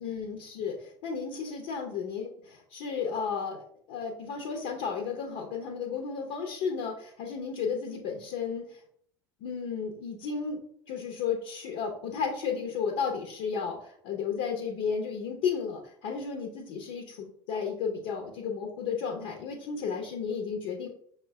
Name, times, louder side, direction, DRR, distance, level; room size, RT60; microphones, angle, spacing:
voice 1, 0.0-8.8 9.4-10.6 10.9-20.9, left 6 dB, 60° left, 1 dB, 0.8 m, -33 dB
5.5 x 2.2 x 3.4 m, 0.63 s
figure-of-eight pair, 70°, 12 cm